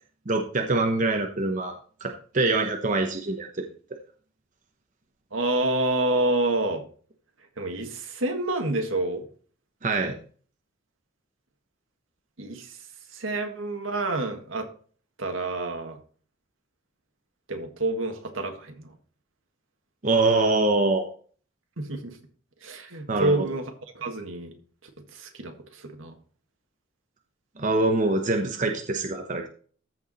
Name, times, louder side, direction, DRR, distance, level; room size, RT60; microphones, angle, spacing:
voice 1, 0.3-1.7 2.0-3.5 9.8-10.2 20.0-21.1 23.1-23.5 27.6-29.5, right 2 dB, 40° right, 4 dB, 0.9 m, -24 dB
voice 2, 5.3-6.8 7.6-9.2 12.4-12.7 13.2-14.7 15.2-16.0 17.5-18.9 21.8-22.1 22.6-23.7 23.9-24.5 25.2-25.5 26.0-26.1, right 2 dB, 80° right, 4 dB, 1.7 m, -28 dB
14.0 x 4.7 x 4.1 m, 0.44 s
head